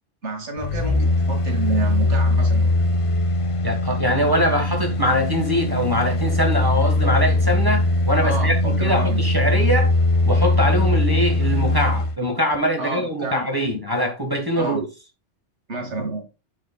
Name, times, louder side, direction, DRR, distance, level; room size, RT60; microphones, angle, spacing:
voice 1, 0.2-2.7 8.2-9.2 12.8-13.5 14.5-14.8 15.7-16.2, right 3 dB, 70° right, 2.3 m, -29 dB
sound 1, 0.6-12.2 12.5-12.6, left 2 dB, 45° left, 0.4 m, -20 dB
voice 2, 3.6-9.9 10.2-14.8, equal, 20° right, 1.5 m, -23 dB
10.5 x 4.9 x 2.3 m
omnidirectional pair, 1.2 m